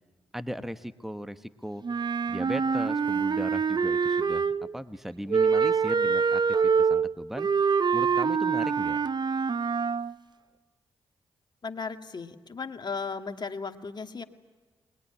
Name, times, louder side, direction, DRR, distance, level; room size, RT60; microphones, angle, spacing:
voice 1, 0.3-1.8 2.3-4.5 4.7-7.5 7.9-9.0, equal, 5° right, 11 dB, 1.1 m, -37 dB
Wind instrument woodwind instrument, 1.8-4.7 5.3-10.1, right 5 dB, 45° right, 0.7 m, -25 dB
voice 2, 11.6-14.2, left 5 dB, 45° left, 6 dB, 1.8 m, -36 dB
21.0 x 20.5 x 9.9 m, 1.4 s
cardioid pair, 55°, 10 cm